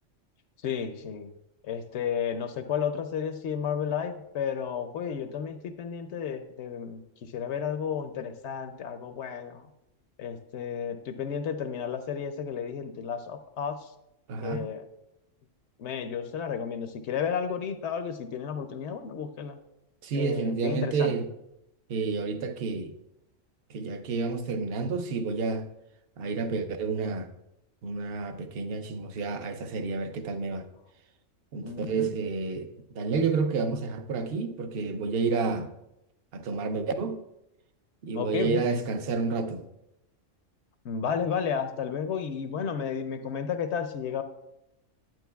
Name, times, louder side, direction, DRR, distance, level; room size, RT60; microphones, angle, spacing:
voice 1, 0.6-1.3 1.6-9.7 10.2-13.9 14.4-14.8 15.8-19.6 20.1-21.1 31.6-32.1 38.1-38.6 40.8-44.2, left 7 dB, 65° left, 0.8 m, -32 dB
voice 2, 14.3-14.7 20.0-21.3 21.9-22.9 23.7-25.7 26.2-27.3 27.8-30.6 31.5-32.7 33.0-35.7 36.3-37.2 38.0-39.6, right 4 dB, 55° right, 0.8 m, -30 dB
10.5 x 8.6 x 2.3 m
omnidirectional pair, 1.3 m